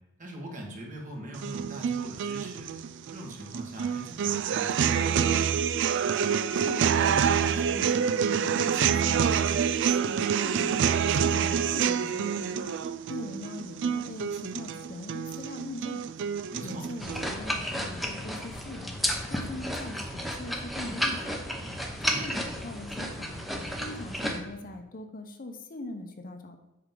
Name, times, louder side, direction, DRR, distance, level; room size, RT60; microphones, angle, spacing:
voice 1, 0.2-2.7 3.1-5.2 16.5-16.9 22.1-22.3, equal, 40° right, -1 dB, 1.9 m, -41 dB
sound 1, 1.3-17.3, right 7 dB, 60° right, 0.4 m, -27 dB
voice 2, 6.5-9.5 9.9-10.8 11.1-12.8 13.1-16.0 16.6-18.9 19.3-21.5 22.0-23.4 23.8-26.6, left 2 dB, 45° left, 5 dB, 0.8 m, -41 dB
sound 2, 17.0-24.4, equal, ahead, 0.8 m, -32 dB
8.3 x 5.9 x 3.8 m, 0.98 s
head